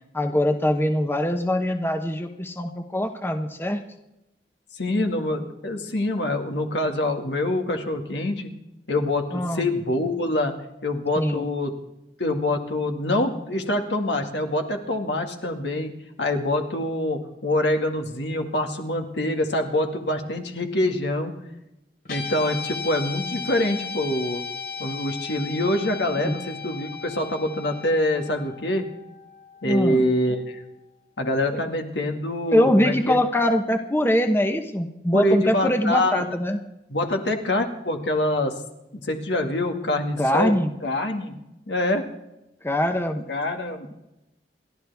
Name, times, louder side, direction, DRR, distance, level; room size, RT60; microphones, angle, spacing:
voice 1, 0.1-3.8 9.3-9.7 11.2-11.5 26.2-26.3 29.6-30.0 32.5-36.6 40.2-40.7 42.6-43.2, left 1 dB, 15° left, 6 dB, 1.0 m, -23 dB
voice 2, 4.7-8.5 8.9-10.5 10.8-11.8 12.2-15.9 16.2-21.4 22.1-24.4 24.8-28.9 29.6-30.6 31.2-33.2 35.1-36.2 36.9-38.5 39.0-40.6 40.8-41.3 41.7-42.0 43.3-43.9, left 1 dB, 80° left, 4 dB, 2.1 m, -25 dB
Guitar, 22.0-30.5, left 5 dB, 60° left, 3.2 m, -36 dB
29.5 x 12.0 x 3.5 m, 0.90 s
head